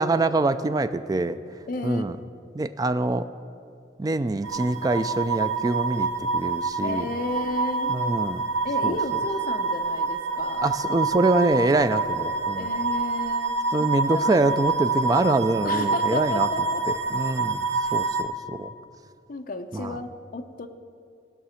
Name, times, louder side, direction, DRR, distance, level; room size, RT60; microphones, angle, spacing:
voice 1, 0.0-1.4 1.8-2.2 2.5-3.3 4.0-7.1 7.9-8.4 8.8-9.0 10.6-12.7 13.7-16.5 17.1-18.7 19.7-19.9, right 2 dB, 20° right, 11 dB, 0.3 m, -25 dB
voice 2, 1.7-2.0 6.8-8.0 8.6-10.7 12.6-13.5 14.1-14.6 15.6-16.8 17.8-17.9 19.3-20.7, left 3 dB, 50° left, 7 dB, 0.7 m, -33 dB
sound 1, 4.4-18.2, right 4 dB, 75° right, 0.8 m, -27 dB
17.5 x 5.9 x 5.6 m, 2.5 s
head